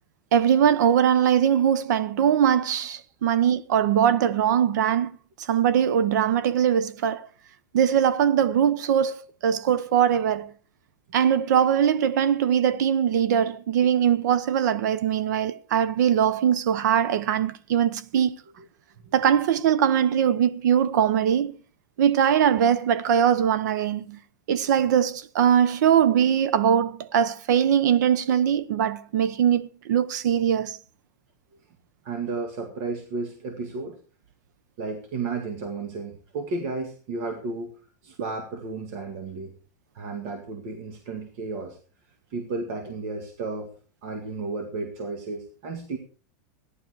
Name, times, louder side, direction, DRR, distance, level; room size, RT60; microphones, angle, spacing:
voice 1, 0.3-5.1 5.4-7.3 7.7-9.2 9.4-10.5 11.1-18.3 19.1-21.6 22.0-24.2 24.5-30.8, right 9 dB, 75° right, 0.9 m, -21 dB
voice 2, 32.0-34.0 34.8-37.8 38.0-39.5 39.9-41.8 42.3-43.7 44.0-46.0, right 3 dB, 50° right, 2.0 m, -33 dB
15.0 x 11.0 x 4.7 m
supercardioid pair, 165°, 10 cm